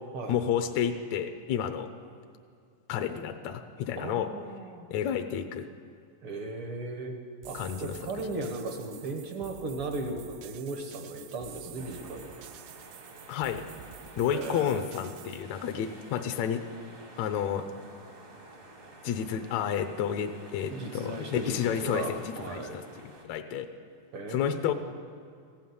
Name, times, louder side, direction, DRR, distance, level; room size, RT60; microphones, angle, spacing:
voice 1, 0.3-1.9 2.9-4.3 4.9-5.7 7.5-8.3 13.3-13.7 14.2-16.6 17.2-17.7 19.0-23.7 24.3-24.7, left 9 dB, 80° left, 7 dB, 1.6 m, -31 dB
voice 2, 4.0-4.8 6.2-7.1 7.4-12.3 14.3-14.8 20.7-22.8 24.1-24.7, right 2 dB, 65° right, 3 dB, 1.3 m, -37 dB
sound 1, 7.4-15.4, right 12 dB, 85° right, 2.2 m, -49 dB
sound 2, 11.8-23.2, right 2 dB, 45° right, 0.8 m, -50 dB
15.5 x 7.2 x 9.3 m, 2.3 s
omnidirectional pair, 3.8 m